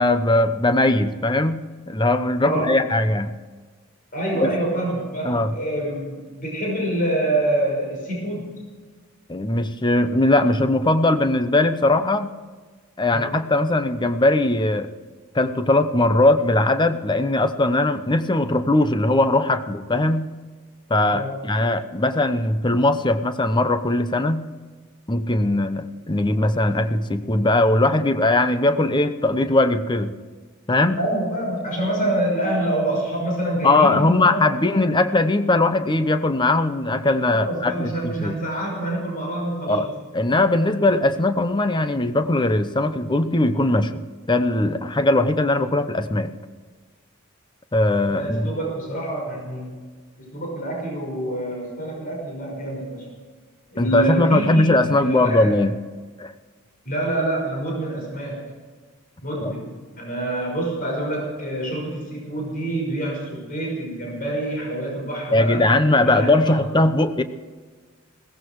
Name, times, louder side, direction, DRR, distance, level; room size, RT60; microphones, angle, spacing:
voice 1, 0.0-3.3 4.4-4.5 5.2-5.5 9.3-12.3 13.0-14.9 15.3-20.3 20.9-24.5 25.1-30.1 30.7-31.0 33.6-38.4 39.7-39.9 40.1-46.3 47.7-48.5 53.8-55.8 56.2-56.3 59.4-59.5 65.3-67.2, left 2 dB, 20° left, 10 dB, 0.8 m, -20 dB
voice 2, 2.4-2.8 4.1-8.6 13.1-13.3 21.1-21.3 31.0-34.8 37.3-39.9 40.3-40.4 48.1-49.9 50.2-53.1 53.7-55.5 56.8-58.5 59.2-65.7 66.0-66.5, right 1 dB, 40° left, -2 dB, 6.0 m, -26 dB
17.0 x 15.0 x 4.7 m, 1.4 s
head